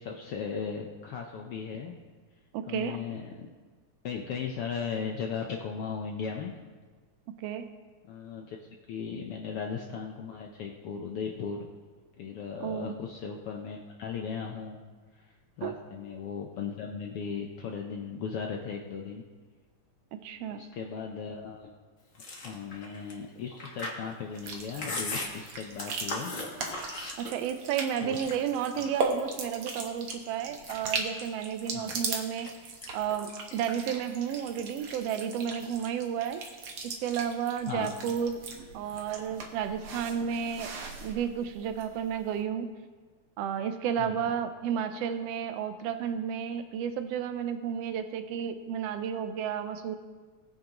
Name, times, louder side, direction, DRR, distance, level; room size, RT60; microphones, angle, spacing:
voice 1, 0.0-2.0 2.7-3.5 4.0-6.5 8.1-8.6 8.9-11.7 12.2-14.8 15.1-15.3 15.6-19.2 20.3-21.7 22.4-26.4 28.0-28.4 28.8-28.9 31.7-32.0 37.7-37.9 44.0-44.3, left 6 dB, 75° left, 1 dB, 1.3 m, -37 dB
voice 2, 2.5-3.0 7.3-7.7 12.6-12.9 15.6-15.7 20.2-20.6 27.2-32.5 32.9-36.4 36.8-38.4 38.7-40.7 41.0-42.7 43.4-50.0, right 8 dB, 85° right, 9 dB, 1.4 m, -32 dB
Chewing mastication, 22.1-27.6 28.0-29.1 29.5-30.1 30.5-32.5 32.8-33.1 33.4-34.2, left 2 dB, 45° left, 1.0 m, -39 dB
sound 1, 24.4-42.2, right 3 dB, 55° right, 1.7 m, -39 dB
19.5 x 9.2 x 3.0 m, 1.4 s
omnidirectional pair, 3.5 m